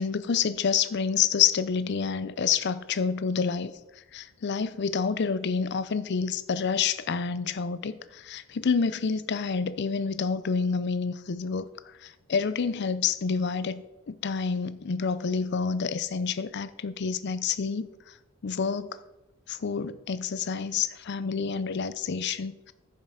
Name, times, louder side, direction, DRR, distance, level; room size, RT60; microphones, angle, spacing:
voice 1, 0.0-3.7 4.1-11.7 12.0-17.9 18.4-19.0 19.5-22.7, left 6 dB, 50° left, 15 dB, 0.5 m, -28 dB
10.0 x 7.4 x 4.9 m, 0.95 s
head